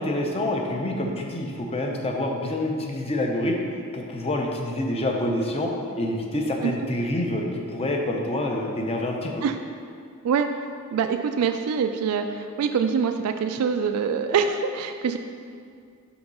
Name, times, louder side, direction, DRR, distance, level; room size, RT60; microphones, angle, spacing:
voice 1, 0.0-3.6 3.9-5.7 6.0-9.4, left 1 dB, 25° left, 1 dB, 0.6 m, -27 dB
voice 2, 10.9-15.2, right 6 dB, 80° right, 7 dB, 0.3 m, -24 dB
5.7 x 3.8 x 5.4 m, 2.3 s
head